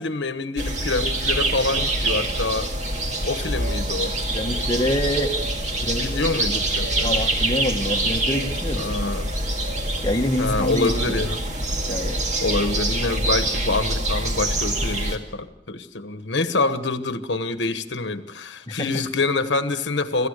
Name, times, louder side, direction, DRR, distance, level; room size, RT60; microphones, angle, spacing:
voice 1, 0.0-2.7 3.2-4.2 6.0-7.2 8.8-9.3 10.4-11.4 12.4-20.3, left 3 dB, 70° left, 10 dB, 1.2 m, -26 dB
sound 1, 0.6-15.2, right 1 dB, 35° right, 2.1 m, -25 dB
voice 2, 4.3-5.4 5.8-6.3 7.0-9.1 10.0-11.2 11.9-12.2 18.7-18.9, left 1 dB, 20° left, 1 dB, 1.2 m, -26 dB
26.0 x 15.5 x 6.6 m, 0.86 s
head